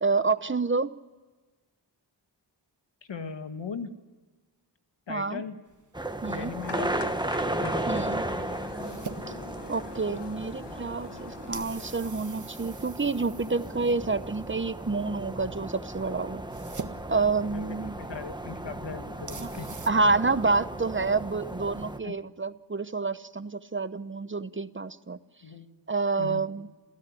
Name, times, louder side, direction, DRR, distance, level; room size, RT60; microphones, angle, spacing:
voice 1, 0.0-1.0 5.1-5.4 6.2-6.5 7.9-8.2 9.7-16.4 17.1-17.9 19.4-19.5 19.9-25.2 25.9-26.7, right 4 dB, 30° right, 14 dB, 0.9 m, -28 dB
voice 2, 3.1-4.0 5.1-5.6 6.3-7.0 7.6-8.1 17.4-19.7 22.0-22.1 25.4-25.7 26.2-26.4, left 5 dB, 90° left, 8 dB, 1.9 m, -38 dB
sound 1, 5.7-19.9, right 4 dB, 45° right, 1.5 m, -47 dB
sound 2, 5.9-22.0, right 1 dB, 10° right, 1.5 m, -35 dB
sound 3, 6.6-12.0, left 7 dB, 70° left, 1.2 m, -44 dB
27.0 x 16.0 x 9.9 m, 1.3 s
wide cardioid pair, 75°, 43 cm